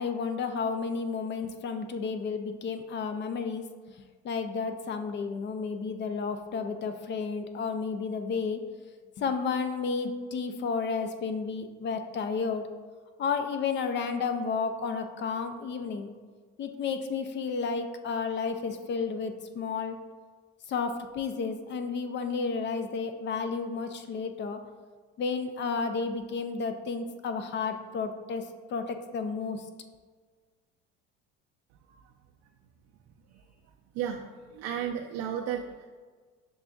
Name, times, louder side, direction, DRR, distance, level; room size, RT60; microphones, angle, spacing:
voice 1, 0.0-3.6 4.2-8.6 9.2-12.6 13.2-16.1 16.6-20.0 20.7-24.6 25.2-28.4 28.7-29.6, left 5 dB, 35° left, 7 dB, 0.4 m, -32 dB
voice 2, 33.9-35.8, right 9 dB, 60° right, 1 dB, 0.4 m, -34 dB
6.8 x 2.5 x 2.3 m, 1.5 s
supercardioid pair, 90°, 32 cm